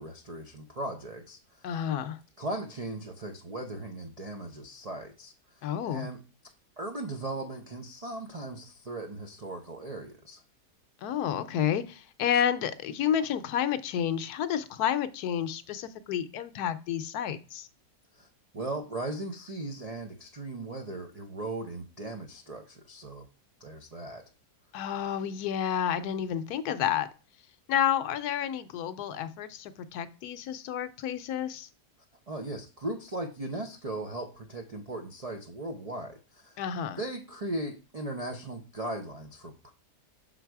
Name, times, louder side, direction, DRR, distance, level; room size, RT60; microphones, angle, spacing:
voice 1, 0.0-1.4 2.4-5.3 5.9-6.2 6.8-10.4 18.1-18.3 18.5-23.3 23.6-24.2 32.3-36.6 37.0-39.7, right 2 dB, 65° right, 0.3 m, -38 dB
voice 2, 1.6-2.2 5.6-6.1 11.0-17.7 24.7-27.1 27.7-31.7 36.6-37.0, left 9 dB, 75° left, 1.0 m, -30 dB
6.4 x 4.0 x 4.6 m
omnidirectional pair, 1.8 m